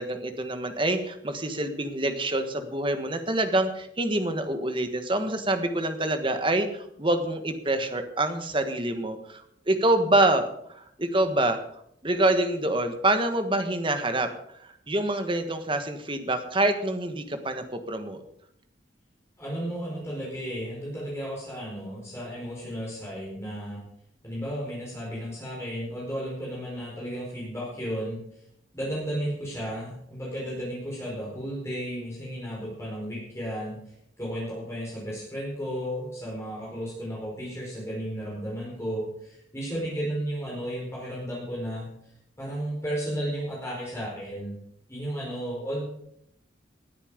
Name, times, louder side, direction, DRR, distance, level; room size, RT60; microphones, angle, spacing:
voice 1, 0.0-10.5 10.7-11.6 12.0-14.3 14.6-18.2, right 1 dB, 25° right, 7 dB, 1.5 m, -26 dB
voice 2, 19.4-23.8 24.2-28.2 28.7-33.8 34.2-41.9 42.4-44.5 44.9-45.8, equal, 15° left, -5 dB, 4.9 m, -33 dB
19.0 x 9.9 x 5.1 m, 0.72 s
head